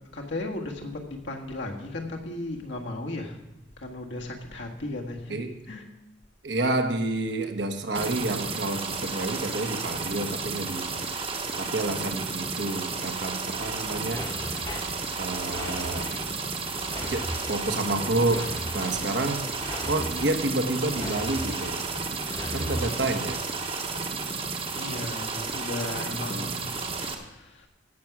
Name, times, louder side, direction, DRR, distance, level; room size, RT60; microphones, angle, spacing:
voice 1, 0.1-3.4 3.8-5.4 5.7-5.8 19.8-20.1 24.7-27.7, left 2 dB, 75° left, 1 dB, 1.7 m, -36 dB
voice 2, 6.4-10.9 11.3-14.2 15.2-16.1 17.1-18.4 18.7-19.4 19.8-21.8 22.5-23.4 26.3-26.5, right 2 dB, 70° right, 6 dB, 1.2 m, -29 dB
sound 1, 7.9-27.1, right 4 dB, 30° right, 1.0 m, -32 dB
sound 2, 13.6-23.3, left 1 dB, 25° left, 1.0 m, -38 dB
16.0 x 6.1 x 5.9 m, 0.97 s
head